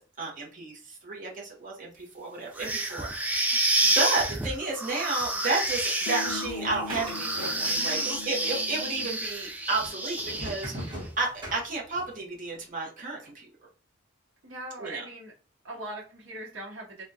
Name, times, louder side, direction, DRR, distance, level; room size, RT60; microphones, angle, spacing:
voice 1, 0.2-3.6 4.0-8.0 8.3-13.5 14.8-15.0, right 3 dB, 45° right, -2 dB, 0.8 m, -32 dB
sound 1, 2.6-10.9, right 1 dB, 10° right, 0.4 m, -29 dB
sound 2, 6.1-9.2, left 4 dB, 65° left, 0.4 m, -40 dB
sound 3, 6.6-8.1 8.3-9.1 9.7-12.2, equal, 25° right, 1.3 m, -40 dB
voice 2, 7.7-8.2 14.4-15.3 15.6-17.0, right 1 dB, 85° right, -3 dB, 0.8 m, -40 dB
3.4 x 2.1 x 2.7 m, 0.38 s
head